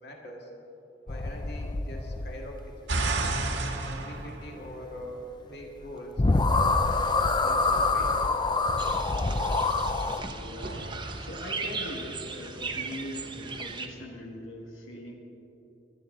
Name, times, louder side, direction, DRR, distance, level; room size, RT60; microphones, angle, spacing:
voice 1, 0.0-0.5 1.1-3.1 3.8-8.3, equal, 55° left, 0 dB, 2.0 m, -43 dB
sound 1, 1.1-2.7 5.8-5.9 6.2-10.2, left 3 dB, 20° left, 0.5 m, -26 dB
sound 2, 2.9-5.3 10.6-12.7, right 2 dB, 70° right, 1.5 m, -33 dB
sound 3, 8.8-13.9, right 4 dB, 25° right, 0.8 m, -37 dB
voice 2, 10.2-15.1, left 1 dB, 90° left, 0 dB, 1.8 m, -41 dB
24.0 x 11.0 x 3.9 m, 2.9 s
head